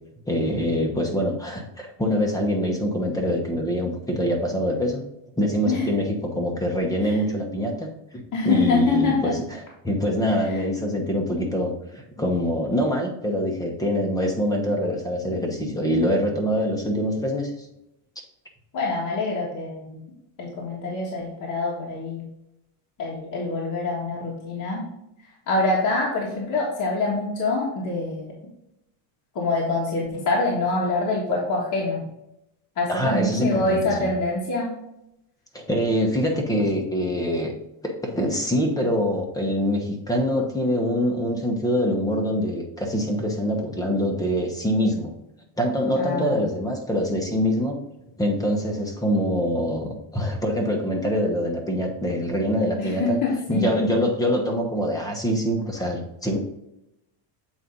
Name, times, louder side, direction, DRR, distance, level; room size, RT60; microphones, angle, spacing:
voice 1, 0.3-5.0 5.4-17.7 32.9-34.1 35.5-37.5 37.8-45.1 45.6-47.7 48.2-53.2 53.5-56.4, equal, 10° left, 1 dB, 1.0 m, -24 dB
voice 2, 8.3-9.3 18.7-20.0 20.4-22.2 23.0-24.8 25.5-28.3 29.4-32.1 32.8-34.7 46.0-46.4 52.8-53.8, left 3 dB, 40° left, -4 dB, 1.6 m, -25 dB
7.9 x 4.2 x 3.9 m, 0.85 s
cardioid pair, 145°, 48 cm